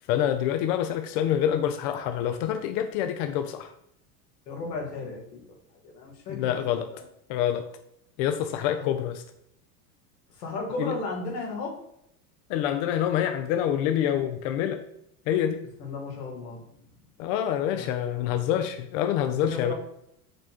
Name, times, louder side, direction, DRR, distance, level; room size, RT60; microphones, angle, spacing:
voice 1, 0.1-3.7 6.3-6.9 7.3-7.7 8.2-9.2 10.8-11.0 12.5-14.8 15.3-15.7 17.2-19.7, left 10 dB, 55° left, 7 dB, 0.5 m, -26 dB
voice 2, 4.5-5.4 5.8-7.0 8.8-8.9 10.3-11.8 15.8-16.7 17.6-18.4 19.2-19.7, left 3 dB, 90° left, 0 dB, 1.5 m, -35 dB
5.1 x 2.2 x 4.2 m, 0.75 s
supercardioid pair, 115°, 48 cm